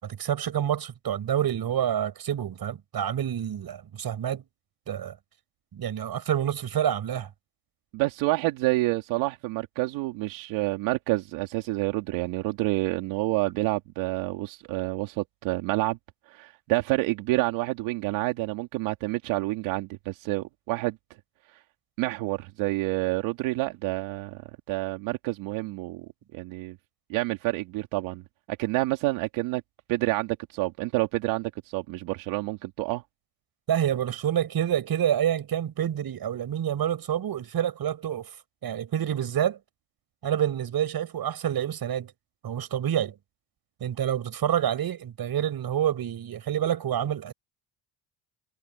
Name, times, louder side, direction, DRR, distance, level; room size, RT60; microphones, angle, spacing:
voice 1, 0.0-4.4 4.9-5.2 5.7-7.3 33.7-38.3 38.6-39.6 40.2-42.1 42.4-43.2 43.8-47.3, right 10 dB, 50° right, 6.2 m, -28 dB
voice 2, 7.9-16.0 16.3-21.0 22.0-24.4 24.7-26.1 26.3-26.8 27.1-28.2 28.6-29.6 29.9-33.0, right 20 dB, 85° right, 2.7 m, -28 dB
supercardioid pair, 90°, 46 cm